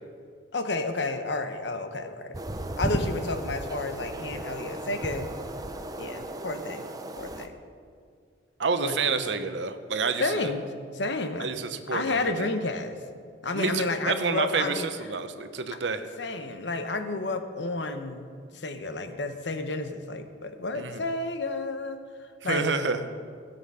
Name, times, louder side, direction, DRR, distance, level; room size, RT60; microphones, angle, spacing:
voice 1, 0.5-2.4 2.8-5.3 6.0-6.8 7.2-7.6 8.8-9.1 10.2-10.7 10.9-11.5 11.9-13.0 13.4-14.9 15.7-15.8 16.2-22.7, left 3 dB, 75° left, 8 dB, 1.0 m, -31 dB
sound 1, 2.3-7.5, right 1 dB, 20° right, 0.6 m, -34 dB
voice 2, 8.6-10.5 11.4-12.5 13.5-16.0 20.7-21.0 22.4-23.0, right 4 dB, 80° right, 9 dB, 0.8 m, -29 dB
16.5 x 7.0 x 5.5 m, 2.2 s
head